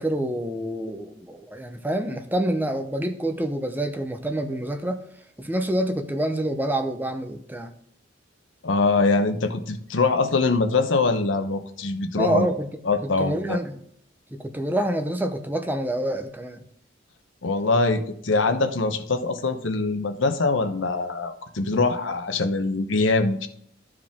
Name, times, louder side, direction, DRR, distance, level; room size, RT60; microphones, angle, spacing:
voice 1, 0.0-5.0 5.4-7.7 12.2-12.7 13.0-13.8 14.3-16.6, right 1 dB, 10° right, 6 dB, 0.6 m, -27 dB
voice 2, 8.6-12.5 12.8-13.6 17.4-23.5, left 3 dB, 70° left, 7 dB, 0.9 m, -23 dB
13.0 x 4.9 x 3.6 m, 0.66 s
head